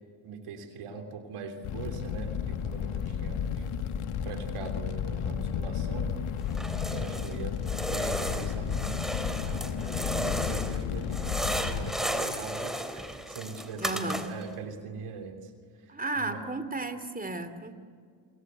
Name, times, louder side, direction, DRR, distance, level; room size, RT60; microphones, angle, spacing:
voice 1, 0.2-3.7 4.2-6.1 6.9-7.6 7.9-16.4, right 5 dB, 80° right, 5 dB, 3.2 m, -41 dB
Fire, 1.6-11.9, left 7 dB, 80° left, 1.9 m, -32 dB
sound 1, 6.5-7.4 7.6-10.8 11.1-14.5, equal, ahead, 3.5 m, -34 dB
voice 2, 13.8-14.3 15.9-17.7, right 2 dB, 15° right, 10 dB, 2.7 m, -33 dB
29.0 x 23.0 x 8.1 m, 2.2 s
supercardioid pair, 50°, 50 cm